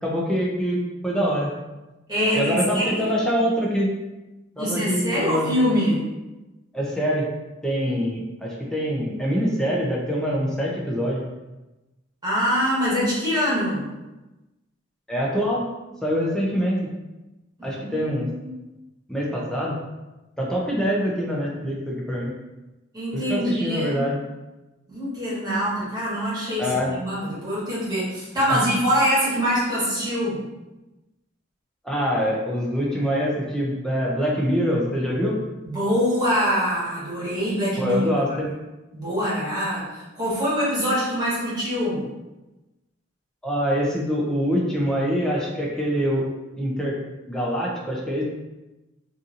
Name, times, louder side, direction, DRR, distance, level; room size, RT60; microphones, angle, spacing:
voice 1, 0.0-1.5 2.3-3.9 4.6-5.5 6.7-7.3 7.6-11.2 15.1-15.6 16.0-16.9 17.6-18.3 19.1-19.8 20.4-22.3 23.1-24.2 26.6-26.9 28.5-28.6 31.8-35.4 37.8-38.5 43.4-46.3 46.6-47.0 47.3-48.2, equal, 5° left, -4 dB, 0.5 m, -24 dB
voice 2, 2.1-3.1 4.6-6.0 7.8-8.0 12.2-13.9 17.6-18.6 22.9-24.0 24.9-30.4 35.6-38.5 38.9-42.0, equal, 20° right, -9 dB, 1.1 m, -24 dB
2.7 x 2.6 x 2.5 m, 1.0 s
head